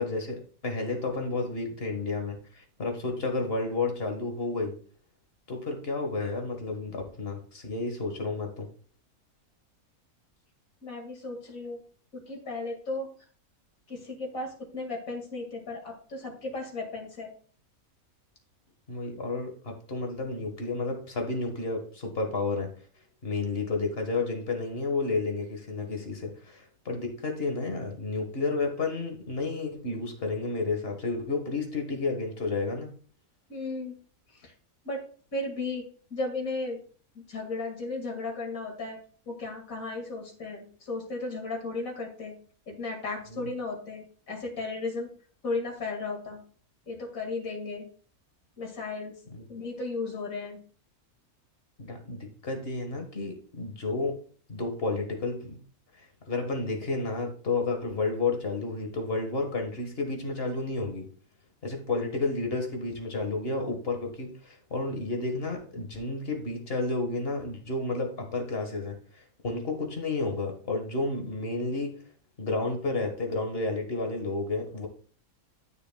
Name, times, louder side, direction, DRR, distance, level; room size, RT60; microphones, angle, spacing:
voice 1, 0.0-4.8 5.5-8.7 18.9-22.7 23.2-32.9 43.3-43.5 49.3-49.4 51.8-54.2 54.5-55.6 56.0-61.1 61.6-72.0 72.4-74.9, left 3 dB, 40° left, 3 dB, 1.7 m, -31 dB
voice 2, 10.8-11.8 12.1-13.1 13.9-17.3 33.5-33.9 34.4-34.5 34.8-35.0 35.3-35.8 36.1-36.8 37.1-39.0 39.3-42.3 42.7-45.1 45.4-46.4 46.9-47.9 48.6-49.1 49.5-50.6, left 3 dB, 65° left, 1 dB, 2.6 m, -35 dB
12.5 x 6.5 x 2.3 m, 0.43 s
omnidirectional pair, 1.5 m